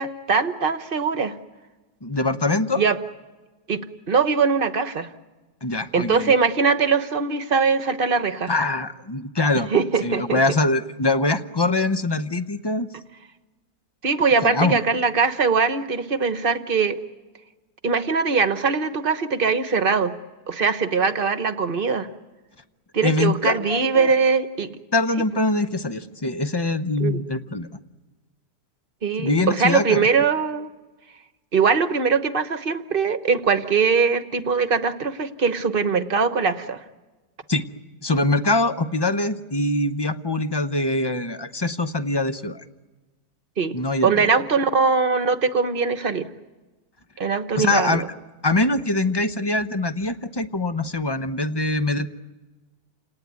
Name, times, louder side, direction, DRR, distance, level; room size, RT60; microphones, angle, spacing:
voice 1, 0.0-1.3 2.8-3.0 3.7-5.1 5.9-8.5 9.7-10.4 14.0-17.0 17.8-20.1 20.5-22.1 22.9-24.8 27.0-27.2 29.0-30.7 31.5-36.8 43.6-46.2 47.2-48.0, right 5 dB, 40° right, 10 dB, 1.2 m, -21 dB
voice 2, 2.0-2.8 5.6-6.3 8.5-9.7 10.0-12.9 14.4-14.8 23.0-24.1 24.9-27.7 29.2-30.1 37.5-37.7 38.0-42.6 43.7-44.3 47.6-48.0 48.4-52.1, left 2 dB, 25° left, 11 dB, 0.6 m, -23 dB
29.5 x 18.5 x 9.4 m, 1.2 s
omnidirectional pair, 1.6 m